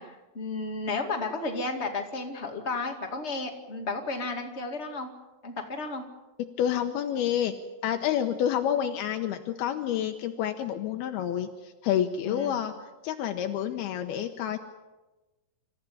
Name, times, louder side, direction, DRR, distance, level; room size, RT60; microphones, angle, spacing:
voice 1, 0.0-5.1 5.4-6.0 12.2-12.7, left 3 dB, 25° left, 3 dB, 1.6 m, -33 dB
voice 2, 6.6-7.5 7.8-12.7 13.0-14.6, left 10 dB, 80° left, 6 dB, 2.8 m, -28 dB
26.5 x 14.5 x 9.5 m, 1.1 s
omnidirectional pair, 4.7 m